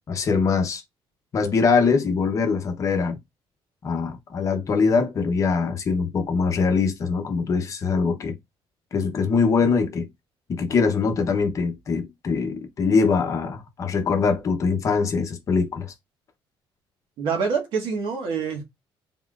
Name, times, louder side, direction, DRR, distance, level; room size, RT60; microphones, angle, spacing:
voice 1, 0.1-0.8 1.3-3.2 3.8-8.4 8.9-10.1 10.5-15.9, left 5 dB, 35° left, 0.8 m, -23 dB
voice 2, 17.2-18.6, right 5 dB, 65° right, 1.5 m, -26 dB
4.2 x 3.6 x 2.4 m
cardioid pair, 175°, 10 cm